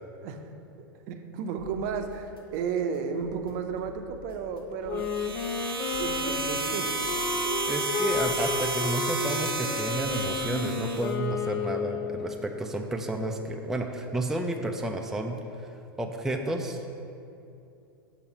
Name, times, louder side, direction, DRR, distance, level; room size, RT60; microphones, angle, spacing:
voice 1, 0.2-0.5 0.9-5.1 6.0-7.0, right 6 dB, 50° right, 6 dB, 0.6 m, -33 dB
sound 1, 1.6-10.3, left 2 dB, 90° left, 1.2 m, -49 dB
Wind instrument woodwind instrument, 4.8-12.6, left 5 dB, 45° left, 0.6 m, -32 dB
sound 2, 5.0-11.1, right 3 dB, 90° right, 0.6 m, -32 dB
voice 2, 7.7-15.7 16.0-16.8, right 1 dB, 5° right, 2 dB, 0.4 m, -31 dB
7.0 x 4.4 x 5.2 m, 2.7 s
figure-of-eight pair, 90°, 12 cm